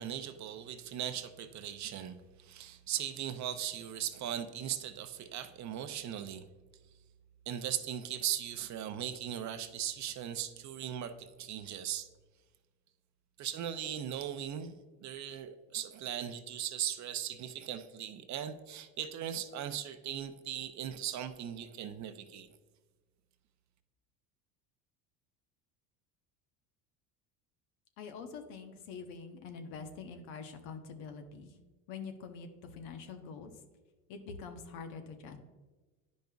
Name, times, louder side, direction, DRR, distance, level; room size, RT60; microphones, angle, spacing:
voice 1, 0.0-6.4 7.5-12.1 13.4-14.7 15.0-22.5, right 10 dB, 45° right, 9 dB, 0.6 m, -38 dB
voice 2, 28.0-31.6 31.9-33.5 34.1-35.4, left 5 dB, 75° left, 6 dB, 1.0 m, -45 dB
10.0 x 5.3 x 2.3 m, 1.3 s
supercardioid pair, 100°, 41 cm